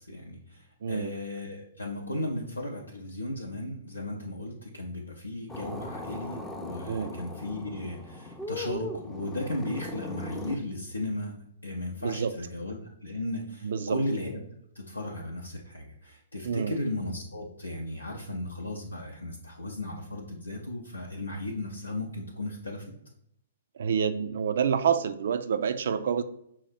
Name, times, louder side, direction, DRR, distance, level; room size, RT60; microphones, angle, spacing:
voice 1, 0.0-11.3 11.6-14.4 14.7-22.9, left 1 dB, 85° left, -2 dB, 0.6 m, -35 dB
voice 2, 0.8-1.1 6.9-7.1 12.0-12.3 13.6-14.0 16.4-16.8 23.8-26.2, right 7 dB, 60° right, 10 dB, 0.3 m, -27 dB
sound 1, 5.5-10.6, left 1 dB, 10° left, 0.5 m, -38 dB
5.8 x 2.1 x 4.0 m, 0.74 s
figure-of-eight pair, 115°, 0 cm